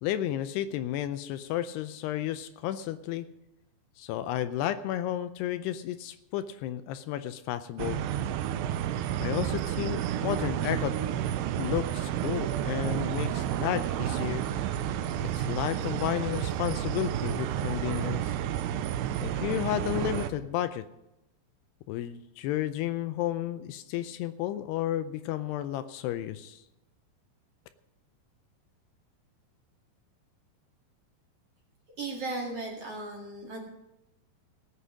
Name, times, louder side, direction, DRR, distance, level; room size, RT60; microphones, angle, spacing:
voice 1, 0.0-3.3 4.0-8.0 9.2-11.0 11.6-14.4 15.2-18.3 19.2-20.8 21.9-26.6, left 12 dB, 80° left, 11 dB, 2.5 m, -32 dB
sound 1, 7.8-20.3, right 10 dB, 85° right, 2.9 m, -31 dB
voice 2, 32.0-33.6, right 2 dB, 45° right, -1 dB, 2.5 m, -36 dB
18.0 x 8.3 x 6.3 m, 0.91 s
omnidirectional pair, 4.9 m